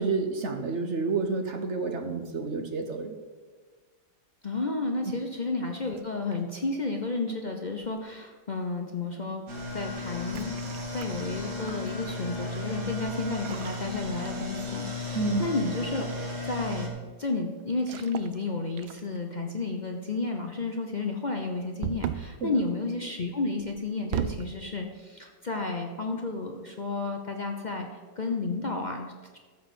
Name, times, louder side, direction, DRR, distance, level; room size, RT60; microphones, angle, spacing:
voice 1, 0.0-3.2 15.1-15.5 22.4-22.5, right 3 dB, 55° right, 5 dB, 0.8 m, -29 dB
voice 2, 4.4-9.4 9.7-10.5 10.9-16.1 16.5-27.9 28.2-29.4, left 3 dB, 55° left, 2 dB, 0.5 m, -32 dB
sound 1, 5.9-6.6 7.8-8.2 10.2-11.9 13.3-14.7 15.0-15.3 17.8-18.4 18.8-19.3 21.8-22.4 23.6-24.5, right 11 dB, 85° right, 1.4 m, -36 dB
sound 2, 9.5-16.9, left 2 dB, 35° right, 2.0 m, -35 dB
13.5 x 4.7 x 7.8 m, 1.4 s
omnidirectional pair, 2.1 m